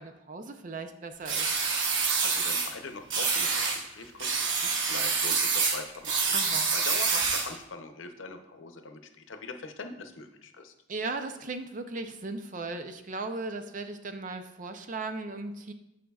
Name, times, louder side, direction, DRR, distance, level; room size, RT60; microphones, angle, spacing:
voice 1, 0.0-1.6 6.3-6.7 10.9-15.7, right 3 dB, 40° right, 8 dB, 0.5 m, -37 dB
sound 1, 1.2-2.7 3.1-3.8 4.2-7.6, right 5 dB, 75° right, 0.9 m, -27 dB
voice 2, 2.2-6.3 6.7-10.7, left 3 dB, 80° left, 6 dB, 0.7 m, -42 dB
11.5 x 4.9 x 2.3 m, 0.87 s
head